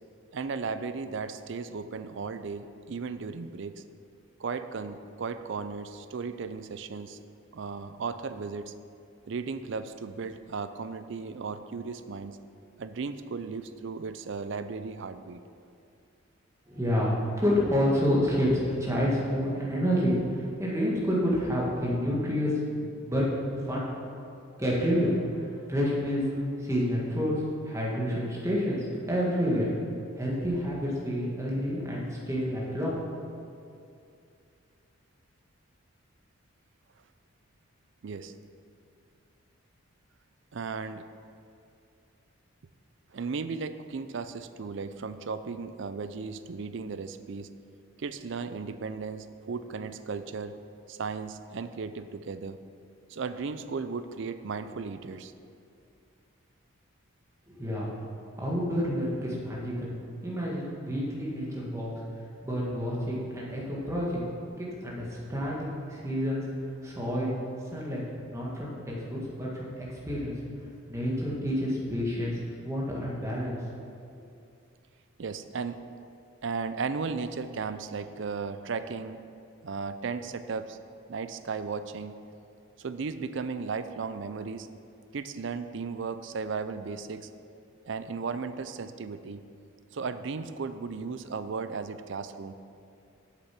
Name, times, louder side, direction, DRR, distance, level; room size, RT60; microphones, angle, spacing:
voice 1, 0.3-3.8 4.4-7.2 7.5-8.7 9.3-12.4 12.8-15.4 38.0-38.3 40.5-41.0 43.1-47.5 48.0-50.6 50.9-52.6 53.1-55.3 75.2-75.8 76.4-79.2 79.6-80.8 81.1-82.1 82.8-84.7 85.1-87.3 87.9-89.4 89.9-92.5, right 5 dB, 60° right, 11 dB, 0.4 m, -35 dB
voice 2, 16.7-22.5 22.8-23.2 23.6-23.9 24.6-26.2 26.6-27.3 27.6-29.7 30.2-33.0 57.5-57.9 58.4-59.9 60.2-61.9 62.4-64.2 64.6-66.5 66.8-67.3 67.7-68.0 68.3-70.3 70.9-73.6, equal, 15° right, -5 dB, 1.7 m, -29 dB
8.1 x 6.8 x 6.0 m, 2.5 s
head